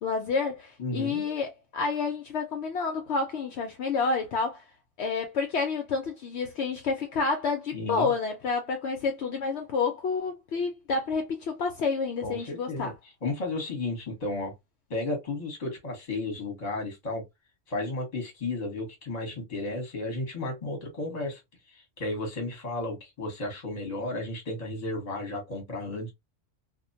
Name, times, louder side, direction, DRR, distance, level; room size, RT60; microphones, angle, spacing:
voice 1, 0.0-4.6 5.0-12.9, left 4 dB, 65° left, 0.8 m, -29 dB
voice 2, 0.8-1.2 7.7-8.1 12.2-12.9 13.2-14.5 14.9-17.2 17.7-21.4 21.7-26.1, left 2 dB, 35° left, 1.1 m, -33 dB
2.4 x 2.1 x 2.6 m
omnidirectional pair, 1.3 m